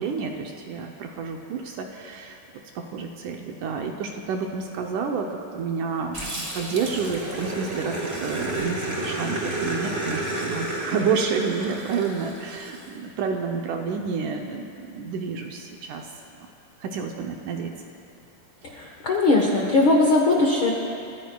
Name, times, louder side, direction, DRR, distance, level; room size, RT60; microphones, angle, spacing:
voice 1, 0.0-2.4 2.8-16.1 16.4-16.5 16.8-17.7, right 5 dB, 75° right, 2 dB, 2.0 m, -29 dB
Growling, 6.1-12.8, right 2 dB, 45° right, 0.7 m, -31 dB
voice 2, 18.7-20.7, left 2 dB, 65° left, -2 dB, 1.2 m, -20 dB
30.0 x 14.5 x 2.3 m, 2.6 s
omnidirectional pair, 4.1 m